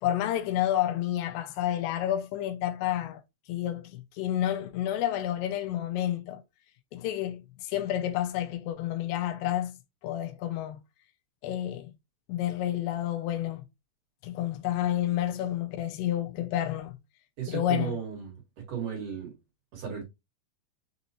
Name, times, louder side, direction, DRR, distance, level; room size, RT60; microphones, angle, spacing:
voice 1, 0.0-3.2 3.5-6.4 6.9-9.8 10.0-10.8 11.4-11.9 12.3-13.7 14.2-17.0 17.5-17.9, left 12 dB, 85° left, 2.6 m, -30 dB
voice 2, 17.4-18.4 18.7-19.3 19.7-20.0, right 8 dB, 55° right, 2.8 m, -34 dB
6.6 x 2.7 x 2.9 m
omnidirectional pair, 4.8 m